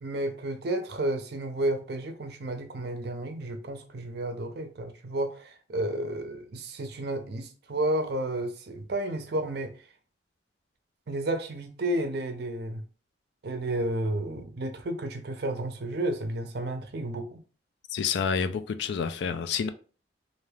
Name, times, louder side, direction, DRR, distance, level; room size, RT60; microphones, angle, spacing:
voice 1, 0.0-9.7 11.1-12.8 13.4-17.4, right 1 dB, 60° right, 0.5 m, -31 dB
voice 2, 17.9-19.7, left 6 dB, 65° left, 0.3 m, -28 dB
2.5 x 2.3 x 3.2 m
head